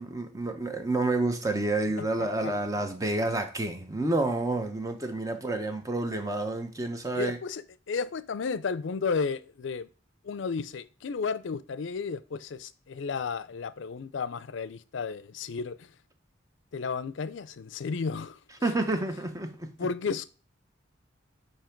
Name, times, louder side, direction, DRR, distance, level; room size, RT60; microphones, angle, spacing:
voice 1, 0.0-7.4 18.6-19.7, right 2 dB, 15° right, 0.8 m, -29 dB
voice 2, 2.0-2.5 7.1-9.9 10.2-15.9 16.7-18.7 19.8-20.2, left 5 dB, 70° left, 0.4 m, -33 dB
8.5 x 2.8 x 4.5 m
head